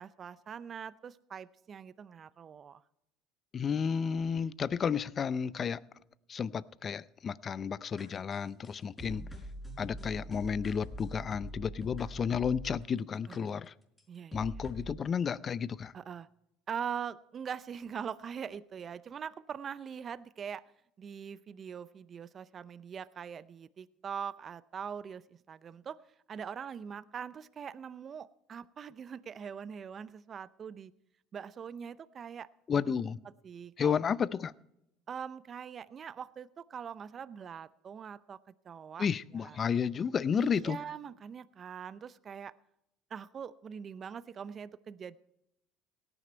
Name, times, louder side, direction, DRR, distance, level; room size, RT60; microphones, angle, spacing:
voice 1, 0.0-2.8 13.3-13.5 14.1-14.5 15.9-16.3 16.7-20.7 21.0-26.0 26.3-30.9 31.3-32.9 33.4-33.9 35.1-38.4 38.6-39.1 39.3-39.6 40.4-42.5 43.1-45.2, right 7 dB, 40° right, 0.6 m, -42 dB
voice 2, 3.5-5.8 6.3-9.2 9.8-13.7 14.3-15.9 32.7-33.2 33.8-34.5 39.0-40.8, left 7 dB, 40° left, 0.5 m, -32 dB
sound 1, 8.0-12.8 13.3-13.4 14.0-14.1 14.3-15.0, equal, 15° left, 4.8 m, -44 dB
17.5 x 9.9 x 4.4 m
supercardioid pair, 85°, 0 cm